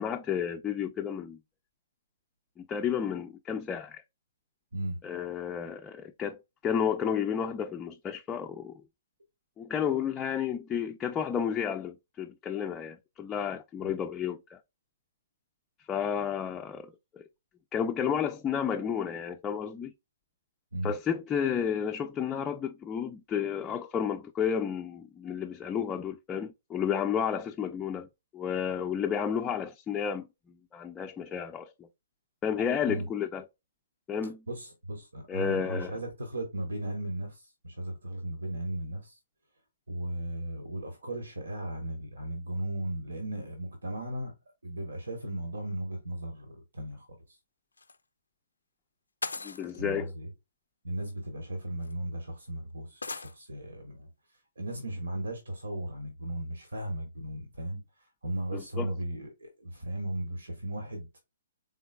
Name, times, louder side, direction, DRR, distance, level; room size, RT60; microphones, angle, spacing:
voice 1, 0.0-1.4 2.6-4.0 5.0-8.7 9.6-14.6 15.9-17.2 17.7-19.9 20.8-28.1 28.3-30.3 30.7-31.7 32.4-33.4 34.1-34.4 35.3-35.9 49.4-50.1 58.5-58.9, left 8 dB, 20° left, 0.3 m, -31 dB
voice 2, 34.5-39.2 39.9-44.3 44.6-47.4 49.8-50.3 50.8-54.1 54.6-61.1, right 1 dB, 80° right, 1.0 m, -36 dB
sound 1, 47.8-48.0 49.2-49.8 51.0-51.1 51.8-51.9 53.0-53.3, left 3 dB, 90° left, 0.4 m, -37 dB
3.8 x 3.7 x 2.2 m
hypercardioid pair, 130°, 0 cm